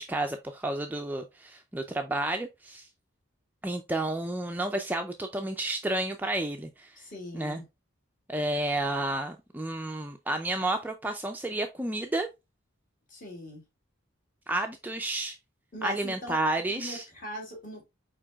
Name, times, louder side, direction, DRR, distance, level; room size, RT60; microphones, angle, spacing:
voice 1, 0.0-2.9 3.6-7.0 7.3-7.6 8.3-12.3 14.5-15.4 15.8-17.1, right 1 dB, 10° right, 0.3 m, -31 dB
voice 2, 7.0-7.7 13.1-13.6 15.7-16.4 16.7-17.9, left 1 dB, 40° left, 2.4 m, -40 dB
4.8 x 4.5 x 2.2 m
head